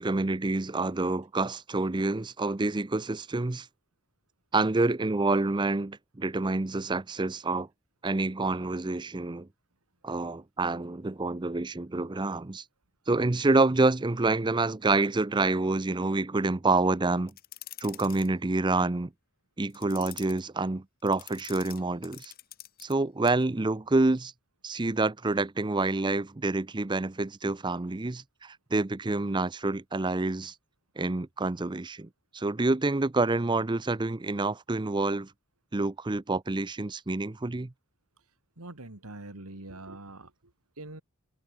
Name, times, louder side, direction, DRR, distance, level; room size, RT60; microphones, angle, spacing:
voice 1, 0.0-3.7 4.5-7.7 8.0-9.5 10.0-12.6 13.1-17.3 17.8-19.1 19.6-22.3 22.8-24.3 24.6-30.5 31.0-32.1 32.3-35.3 35.7-37.7, right 2 dB, 20° right, 0.6 m, -27 dB
sound 1, 17.3-18.3 19.7-20.4 21.1-22.9 23.2-23.4, left 14 dB, 40° left, 1.2 m, -46 dB
voice 2, 38.6-40.3 40.8-41.0, right 2 dB, 85° right, 2.9 m, -43 dB
head